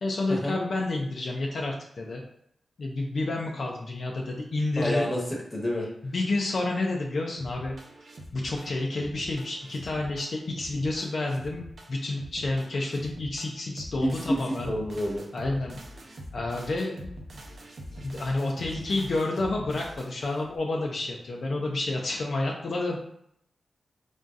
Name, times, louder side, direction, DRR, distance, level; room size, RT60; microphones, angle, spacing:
voice 1, 0.0-2.2 2.8-5.1 6.1-7.7 8.3-14.7 15.3-15.8 16.3-17.1 18.0-23.0, left 2 dB, 55° left, -1 dB, 0.5 m, -29 dB
voice 2, 4.8-5.2 5.5-5.9 14.0-15.2, equal, 15° left, -2 dB, 1.1 m, -28 dB
sound 1, 7.4-20.6, equal, 55° right, 0.7 m, -44 dB
4.0 x 3.5 x 2.5 m, 0.73 s
wide cardioid pair, 120°, 0 cm